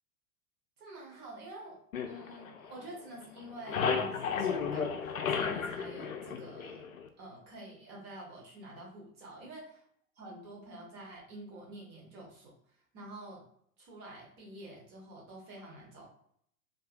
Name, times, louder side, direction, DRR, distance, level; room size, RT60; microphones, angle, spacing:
voice 1, 0.8-1.8 2.0-6.8 7.2-9.6 10.2-12.5 12.9-13.4 13.8-16.1, right 1 dB, 25° right, -3 dB, 0.8 m, -48 dB
sound 1, 1.9-3.1 3.4-7.1, left 6 dB, 70° left, 0.5 m, -33 dB
2.6 x 2.6 x 2.4 m, 0.66 s
figure-of-eight pair, 100°, 43 cm